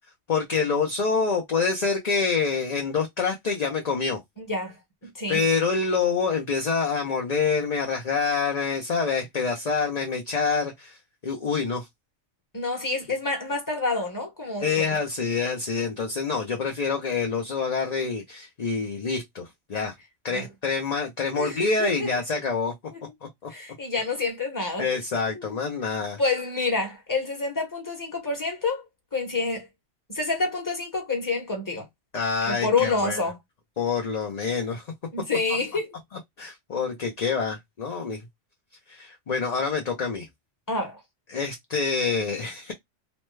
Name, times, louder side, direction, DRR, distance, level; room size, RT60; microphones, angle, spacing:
voice 1, 0.3-4.2 5.3-11.0 11.2-11.9 14.6-19.9 20.2-22.7 23.2-23.5 24.8-26.2 32.1-33.2 33.8-34.9 36.4-38.2 38.9-40.3 41.3-42.7, left 5 dB, 45° left, 0.6 m, -26 dB
voice 2, 4.4-4.8 5.0-5.4 12.5-14.9 20.3-20.4 21.3-22.1 22.9-23.0 23.5-24.9 25.3-25.6 26.2-28.8 29.1-29.7 30.1-31.8 32.5-33.4 35.1-36.0 40.7-41.0, left 3 dB, 15° left, 1.1 m, -28 dB
3.1 x 2.1 x 3.1 m
omnidirectional pair, 1.2 m